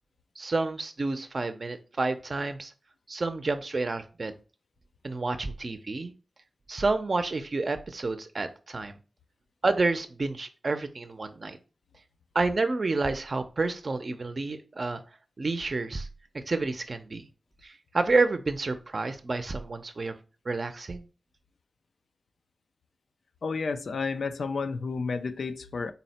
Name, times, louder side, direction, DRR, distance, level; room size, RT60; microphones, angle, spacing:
voice 1, 0.4-2.7 3.1-4.3 5.0-6.1 6.7-9.0 9.6-11.6 12.3-15.0 15.4-16.1 16.3-17.3 17.6-20.1 20.5-21.1, right 3 dB, 50° right, 0.5 m, -29 dB
voice 2, 23.4-25.9, left 4 dB, 85° left, 0.4 m, -31 dB
4.0 x 2.1 x 4.0 m
wide cardioid pair, 70°, 0 cm